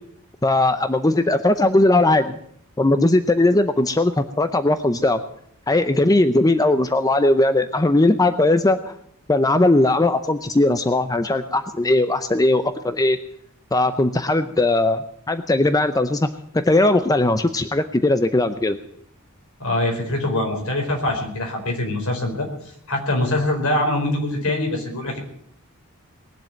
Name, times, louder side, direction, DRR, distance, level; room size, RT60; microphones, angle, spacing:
voice 1, 0.4-2.4 2.8-5.2 5.7-8.9 9.3-13.2 13.7-16.3 16.5-18.8, left 2 dB, 15° left, 10 dB, 0.6 m, -19 dB
voice 2, 19.6-22.5 22.9-25.2, left 1 dB, 70° left, 2 dB, 4.7 m, -23 dB
20.0 x 7.6 x 9.1 m, 0.68 s
head